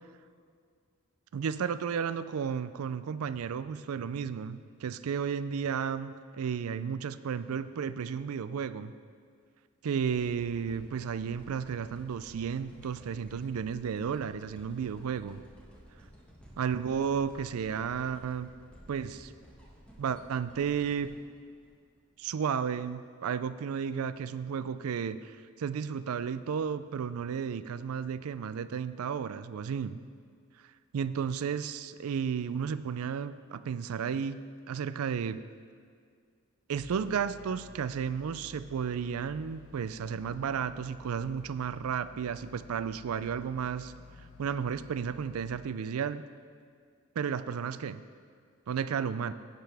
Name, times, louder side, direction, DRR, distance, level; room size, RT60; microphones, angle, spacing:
voice 1, 1.3-8.9 9.8-15.4 16.6-18.5 18.9-19.3 20.0-21.2 22.2-25.3 25.6-30.0 30.9-34.4 34.7-35.4 36.7-43.9 44.4-46.2 47.2-48.0 48.7-49.3, right 7 dB, 80° right, 14 dB, 0.4 m, -33 dB
sound 1, 10.1-22.3 22.8-22.9, equal, 5° left, 1.3 m, -54 dB
sound 2, 36.7-45.5, left 3 dB, 80° left, 1.2 m, -52 dB
16.0 x 6.8 x 3.4 m, 2.1 s
head